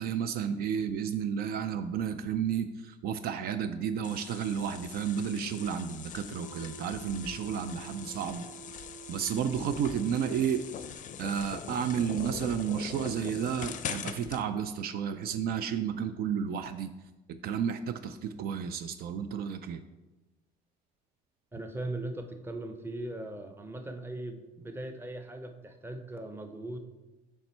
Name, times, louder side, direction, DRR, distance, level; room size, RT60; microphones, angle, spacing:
voice 1, 0.0-8.4 9.1-10.6 11.2-16.9 17.3-19.8, right 8 dB, 65° right, 10 dB, 0.4 m, -32 dB
sound 1, 4.0-14.4, left 8 dB, 50° left, 0.5 m, -42 dB
sound 2, 6.3-10.5, right 6 dB, 85° right, 1.2 m, -50 dB
voice 2, 21.5-26.8, right 1 dB, 15° right, 6 dB, 0.6 m, -39 dB
7.2 x 3.3 x 4.4 m, 1.1 s
cardioid pair, 110°, 17 cm